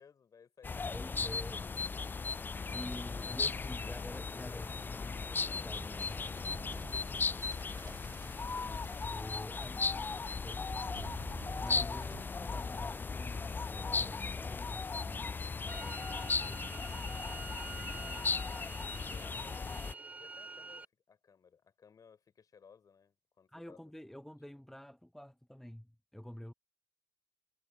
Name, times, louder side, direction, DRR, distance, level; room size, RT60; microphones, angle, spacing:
voice 1, 0.0-1.4 3.1-3.3 12.0-12.2 18.0-23.8 24.5-24.6, left 6 dB, 35° left, 5.7 m, -61 dB
sound 1, 0.6-19.9, left 4 dB, 20° left, 0.5 m, -37 dB
voice 2, 0.9-1.7 2.7-8.0 8.6-17.1 17.8-18.2 23.5-26.5, equal, 5° left, 1.2 m, -49 dB
sound 2, 5.7-9.8 10.6-12.3, right 8 dB, 40° right, 2.2 m, -53 dB
sound 3, 15.7-20.9, right 3 dB, 15° right, 0.8 m, -47 dB
figure-of-eight pair, 55°, 10 cm